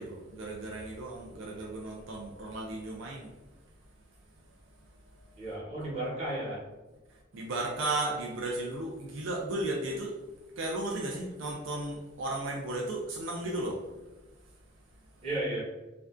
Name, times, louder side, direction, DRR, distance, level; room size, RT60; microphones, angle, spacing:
voice 1, 0.0-3.3 5.3-5.5 7.1-10.2 10.6-13.8, right 2 dB, 75° right, -1 dB, 0.4 m, -35 dB
voice 2, 5.4-6.6 15.2-15.6, right 1 dB, 35° right, -6 dB, 0.9 m, -33 dB
2.4 x 2.2 x 2.3 m, 1.1 s
head